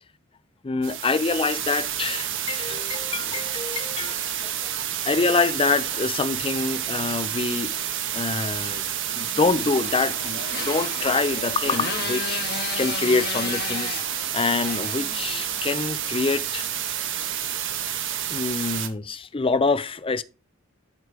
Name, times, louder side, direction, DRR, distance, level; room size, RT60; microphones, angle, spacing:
voice 1, 0.6-4.5 5.0-7.7 8.1-8.9 9.1-12.4 12.8-14.0 14.3-16.7 18.3-20.2, left 4 dB, 25° left, 0.5 m, -26 dB
sound 1, 0.8-18.9, right 10 dB, 65° right, 1.3 m, -29 dB
Motorcycle, 9.0-15.7, left 6 dB, 50° left, 1.3 m, -34 dB
11.0 x 4.9 x 5.0 m
head